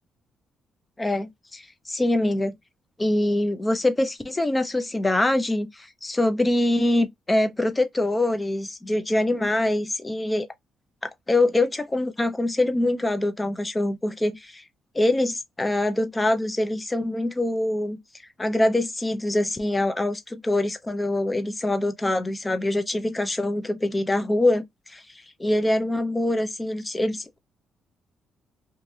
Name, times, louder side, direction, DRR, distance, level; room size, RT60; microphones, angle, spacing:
voice 1, 1.0-1.6 1.9-2.6 3.0-10.5 11.3-14.6 14.9-18.0 18.4-25.0 25.4-27.4, left 1 dB, 15° left, 0.7 m, -24 dB
3.2 x 2.4 x 2.7 m
cardioid pair, 90°, 0 cm